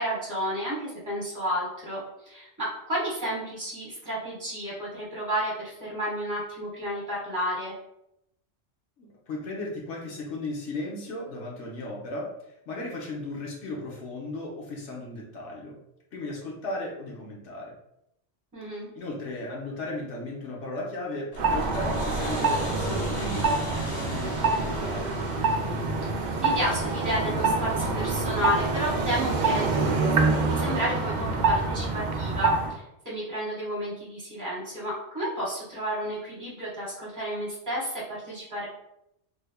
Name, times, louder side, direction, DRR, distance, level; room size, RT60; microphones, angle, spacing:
voice 1, 0.0-7.7 18.5-18.9 22.2-22.4 26.4-38.7, equal, 15° right, -6 dB, 1.3 m, -32 dB
voice 2, 9.0-12.3 12.7-15.8 16.1-17.7 18.9-25.2, left 2 dB, 75° left, -2 dB, 1.2 m, -36 dB
sound 1, 21.3-29.8, equal, 45° left, 0.6 m, -38 dB
sound 2, 21.4-32.7, right 3 dB, 60° right, 0.5 m, -26 dB
3.4 x 3.3 x 2.3 m, 0.81 s
omnidirectional pair, 1.2 m